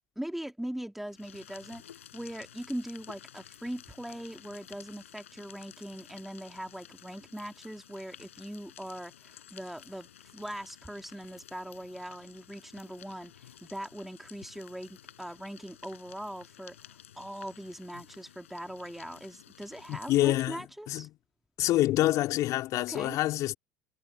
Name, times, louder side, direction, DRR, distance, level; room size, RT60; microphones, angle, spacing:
voice 1, 0.2-1.8 2.1-16.8 17.2-21.1 22.9-23.2, right 1 dB, 5° right, 2.9 m, -41 dB
sound 1, 1.0-20.7, left 10 dB, 75° left, 7.5 m, -53 dB
voice 2, 19.9-21.1 21.6-23.5, left 15 dB, 50° left, 3.9 m, -27 dB
figure-of-eight pair, 65°, 7 cm